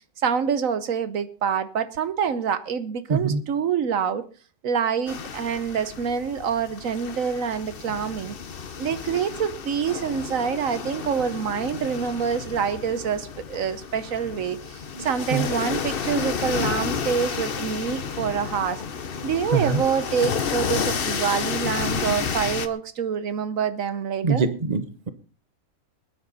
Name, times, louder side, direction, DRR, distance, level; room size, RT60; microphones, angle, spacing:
voice 1, 0.2-4.2 4.6-8.3 8.8-18.8 19.2-24.5, right 7 dB, 70° right, 1.3 m, -26 dB
voice 2, 3.1-3.4 15.0-15.5 19.5-19.8 24.2-25.1, right 5 dB, 30° right, 1.0 m, -24 dB
sound 1, 5.1-22.7, left 6 dB, 45° left, 1.0 m, -31 dB
21.5 x 9.8 x 4.1 m
omnidirectional pair, 1.5 m